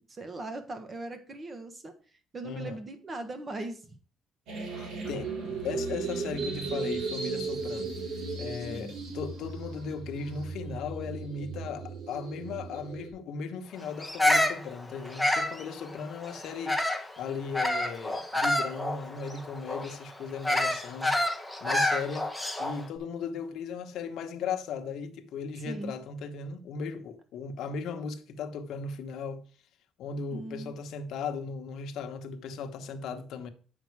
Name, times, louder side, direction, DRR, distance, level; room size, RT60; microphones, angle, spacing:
voice 1, 0.1-1.9 2.3-4.0 8.7-8.9 25.6-25.9 30.3-30.8, right 2 dB, 25° right, 1.4 m, -39 dB
voice 2, 2.4-2.8 4.8-7.9 8.4-21.1 21.6-22.3 22.6-29.4 30.0-33.5, left 5 dB, 70° left, 1.1 m, -37 dB
sound 1, 4.5-13.1, right 4 dB, 75° right, 2.8 m, -36 dB
Bird vocalization bird call bird song, 14.0-17.1 17.5-22.8, left 1 dB, ahead, 0.9 m, -28 dB
8.2 x 5.8 x 4.7 m
cardioid pair, 145°, 0 cm